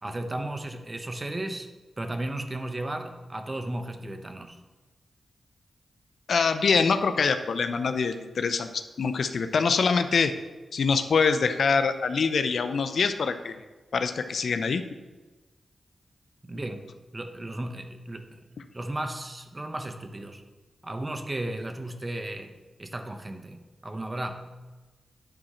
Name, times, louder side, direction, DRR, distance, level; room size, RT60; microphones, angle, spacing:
voice 1, 0.0-1.7 2.0-4.6 16.4-20.4 20.8-22.5 22.8-24.5, right 1 dB, 30° right, 6 dB, 1.1 m, -35 dB
voice 2, 6.3-10.3 10.7-13.6 13.9-14.8, left 5 dB, 75° left, 9 dB, 0.6 m, -24 dB
10.5 x 4.3 x 6.4 m, 1.2 s
cardioid pair, 55°, 0 cm